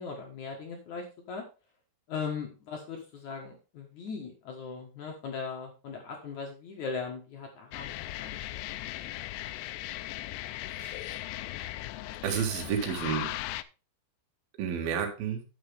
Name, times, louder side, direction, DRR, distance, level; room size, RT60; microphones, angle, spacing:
voice 1, 0.0-1.4 2.1-8.4 8.7-8.8 9.0-9.2, left 5 dB, 65° left, 2 dB, 1.9 m, -39 dB
sound 1, 7.7-13.6, left 16 dB, 85° left, 2.5 m, -38 dB
voice 2, 10.7-11.2 12.2-13.3 14.6-15.4, right 8 dB, 60° right, 3 dB, 3.2 m, -31 dB
10.0 x 7.9 x 3.5 m, 0.32 s
omnidirectional pair, 5.6 m